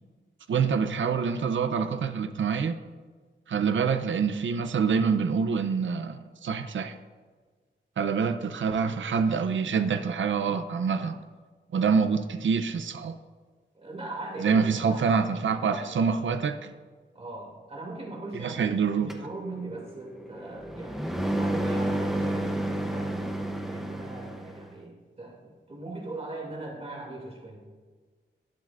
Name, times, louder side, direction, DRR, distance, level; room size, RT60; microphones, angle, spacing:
voice 1, 0.5-2.8 3.5-7.0 8.0-11.2 11.7-13.2 14.4-16.7 18.4-19.1, right 5 dB, 85° right, 10 dB, 0.6 m, -26 dB
voice 2, 13.7-15.2 15.5-16.4 17.1-18.8 19.0-23.2 23.7-27.6, right 2 dB, 30° right, -1 dB, 2.6 m, -40 dB
sound 1, 19.1-24.7, right 1 dB, ahead, 0.8 m, -31 dB
18.5 x 7.5 x 2.5 m, 1.4 s
wide cardioid pair, 145°, 19 cm